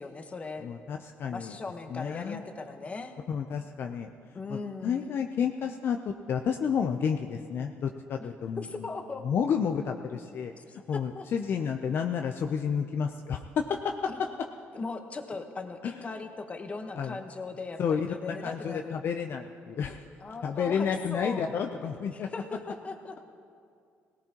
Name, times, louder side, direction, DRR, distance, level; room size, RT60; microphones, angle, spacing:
voice 1, 0.0-0.7 1.2-3.1 4.3-5.1 8.2-8.3 8.6-9.3 10.6-11.3 14.1-14.2 14.7-19.0 20.2-21.5 22.1-23.2, left 3 dB, 30° left, 6 dB, 1.1 m, -39 dB
voice 2, 0.6-1.6 1.9-2.4 3.3-4.1 4.5-8.9 9.2-10.5 10.9-14.3 15.8-16.0 17.0-17.2 17.8-20.0 20.4-22.3, left 7 dB, 60° left, 4 dB, 0.6 m, -31 dB
18.0 x 17.5 x 2.9 m, 2.4 s
cardioid pair, 95°, 4 cm